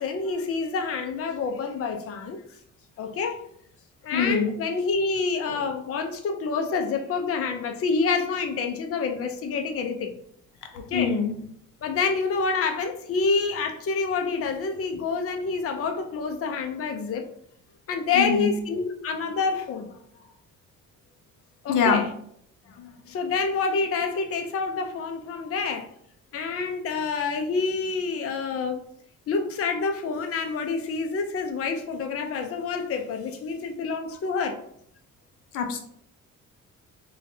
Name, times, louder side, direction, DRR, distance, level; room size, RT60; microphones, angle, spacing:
voice 1, 0.0-2.4 3.0-3.4 4.0-10.1 10.7-11.1 11.8-17.3 17.9-19.9 21.6-22.0 22.7-25.9 26.3-28.8 29.3-34.6, left 4 dB, 50° left, 0.6 m, -27 dB
voice 2, 4.1-4.5 10.9-11.4 18.1-18.5 21.7-22.0 35.5-35.8, left 5 dB, 85° left, 0.7 m, -23 dB
5.0 x 2.3 x 2.7 m
cardioid pair, 90°, 30 cm